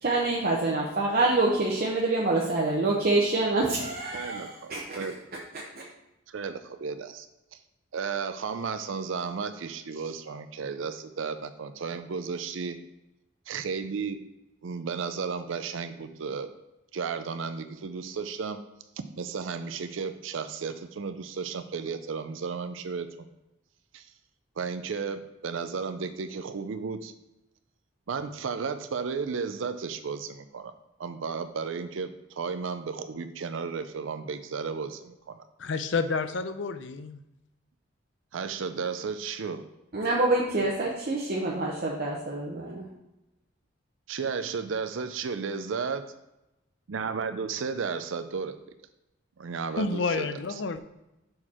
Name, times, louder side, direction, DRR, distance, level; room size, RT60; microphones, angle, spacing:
voice 1, 0.0-4.8 5.5-5.6 39.9-42.9, right 2 dB, 50° right, 0.8 m, -26 dB
voice 2, 4.1-4.5 5.0-5.1 6.3-7.3 7.5-7.6 7.9-12.8 13.5-14.2 14.6-16.5 16.9-18.6 19.2-23.3 23.9-24.1 24.6-27.1 28.1-30.7 31.0-35.4 38.3-39.6 44.1-46.1 46.9-48.6 49.4-50.3, right 5 dB, 75° right, 0.5 m, -33 dB
voice 3, 35.6-37.2 49.8-50.8, left 4 dB, 65° left, 0.5 m, -29 dB
6.6 x 4.5 x 4.2 m
head